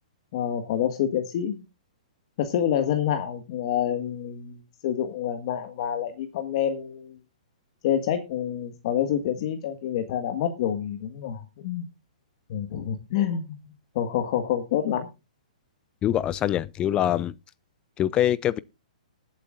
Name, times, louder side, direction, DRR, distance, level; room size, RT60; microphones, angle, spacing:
voice 1, 0.3-1.6 2.4-4.6 4.8-7.2 7.8-11.8 12.5-13.4 13.9-15.1, left 9 dB, 50° left, 1.7 m, -27 dB
voice 2, 16.0-17.3 18.0-18.6, left 11 dB, 20° left, 0.4 m, -24 dB
20.0 x 8.3 x 2.5 m
hypercardioid pair, 135°, 4 cm